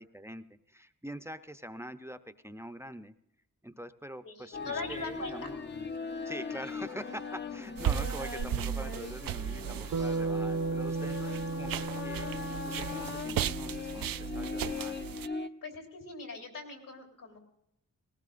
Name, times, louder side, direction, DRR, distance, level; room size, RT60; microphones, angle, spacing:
voice 1, 0.0-3.2 3.6-5.6 6.2-15.2, equal, 10° right, 10 dB, 0.6 m, -44 dB
voice 2, 4.2-5.5 11.0-11.5 15.6-17.4, left 3 dB, 70° left, 2 dB, 3.5 m, -42 dB
sound 1, 4.5-15.5, left 4 dB, 35° left, 0.6 m, -40 dB
sound 2, 7.8-15.3, right 10 dB, 85° right, 0.5 m, -36 dB
Bass guitar, 9.9-14.3, right 3 dB, 65° right, 0.9 m, -35 dB
19.5 x 18.5 x 2.5 m, 0.79 s
wide cardioid pair, 110°, 33 cm